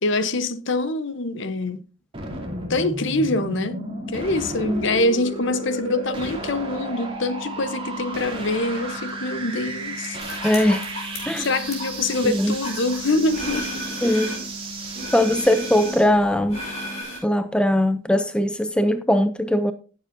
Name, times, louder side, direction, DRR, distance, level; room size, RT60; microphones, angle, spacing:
voice 1, 0.0-1.8 2.7-3.8 4.1-10.2 11.4-13.7 14.0-14.3, left 2 dB, 55° left, 0.9 m, -25 dB
sound 1, 2.1-16.1, right 2 dB, 25° right, 2.4 m, -34 dB
sound 2, 3.7-17.0, left 1 dB, 50° right, 4.8 m, -41 dB
sound 3, 10.2-14.5 14.9-17.2, equal, 30° left, 5.3 m, -34 dB
voice 2, 10.4-10.8 11.3-11.5 12.2-12.5 14.0-14.4 15.1-16.6 17.2-19.7, left 1 dB, 5° left, 0.4 m, -20 dB
16.0 x 7.4 x 2.6 m
head